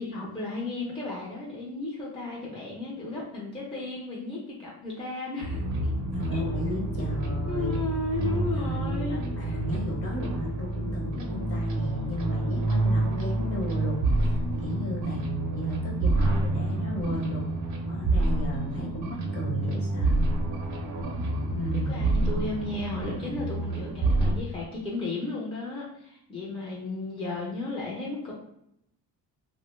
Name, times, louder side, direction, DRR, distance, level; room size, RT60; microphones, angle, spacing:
voice 1, 0.0-5.6 6.3-6.4 7.5-9.6 21.8-28.3, left 3 dB, 15° left, -4 dB, 0.5 m, -34 dB
sound 1, 5.4-24.4, right 2 dB, 50° right, 0.6 m, -28 dB
voice 2, 6.1-7.8 8.5-17.4 17.8-20.2 21.5-22.1, equal, 40° left, -2 dB, 0.9 m, -34 dB
2.7 x 2.1 x 3.0 m, 0.78 s
cardioid pair, 120°, 39 cm